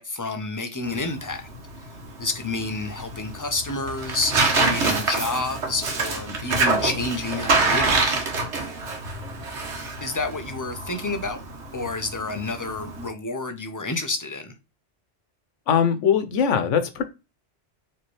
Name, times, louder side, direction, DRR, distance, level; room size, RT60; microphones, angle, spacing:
voice 1, 0.0-1.5 2.2-8.1 10.0-11.4 11.7-14.5, left 3 dB, 20° left, 0.5 m, -29 dB
Tearing, 0.8-13.1, right 3 dB, 70° right, 1.4 m, -26 dB
voice 2, 15.7-17.0, left 7 dB, 90° left, 1.1 m, -21 dB
4.4 x 3.2 x 3.1 m
omnidirectional pair, 1.2 m